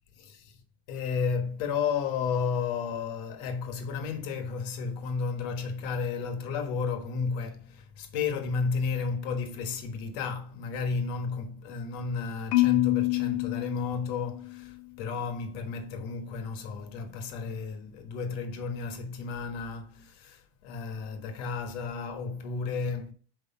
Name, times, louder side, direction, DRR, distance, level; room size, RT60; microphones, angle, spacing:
voice 1, 0.1-0.6 0.9-23.1, left 5 dB, 45° left, 1.3 m, -33 dB
Marimba xylophone, 12.5-14.7, left 22 dB, 60° left, 0.9 m, -27 dB
6.0 x 4.9 x 4.3 m
supercardioid pair, 170°, 20 cm